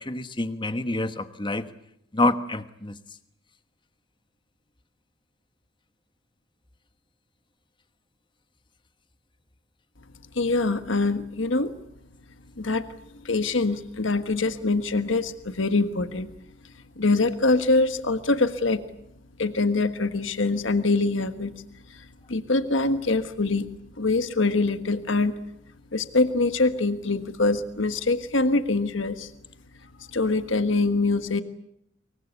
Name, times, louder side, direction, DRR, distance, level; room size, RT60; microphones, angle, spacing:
voice 1, 0.0-1.7 2.1-3.0, left 2 dB, 25° left, 11 dB, 1.3 m, -27 dB
voice 2, 10.3-11.7 12.6-16.3 17.0-18.8 19.4-21.6 21.9-23.7 24.0-25.3 25.9-29.3 30.1-31.4, left 3 dB, 70° left, 10 dB, 1.4 m, -24 dB
24.0 x 23.0 x 8.3 m, 0.77 s
head